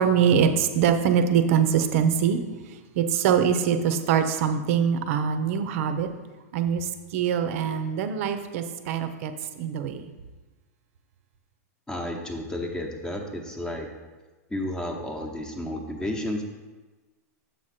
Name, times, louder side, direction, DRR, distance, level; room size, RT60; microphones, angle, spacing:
voice 1, 0.0-2.4 2.7-6.1 6.5-10.1, right 7 dB, 60° right, 9 dB, 0.7 m, -23 dB
voice 2, 11.9-13.9 14.5-16.4, left 1 dB, 10° left, 3 dB, 0.9 m, -32 dB
7.1 x 4.9 x 4.3 m, 1.2 s
hypercardioid pair, 130°, 8 cm